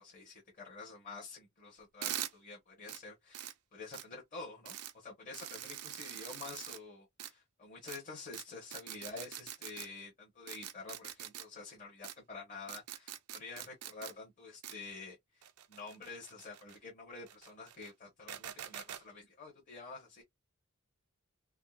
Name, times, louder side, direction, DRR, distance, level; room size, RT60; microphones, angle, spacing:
voice 1, 0.0-20.2, left 4 dB, 35° left, 1.0 m, -49 dB
sound 1, 2.0-2.3 2.9-3.0 3.3-3.5 3.9-4.0 4.7-4.9 5.3-6.8 7.2-7.3 7.9-8.0 8.3-8.4 8.7-9.9 10.5-11.4 12.0-12.1 12.7-14.1 14.6-14.7 15.4-16.8 17.3-17.9 18.3-19.0, right 11 dB, 90° right, 0.5 m, -43 dB
3.6 x 2.1 x 2.3 m
head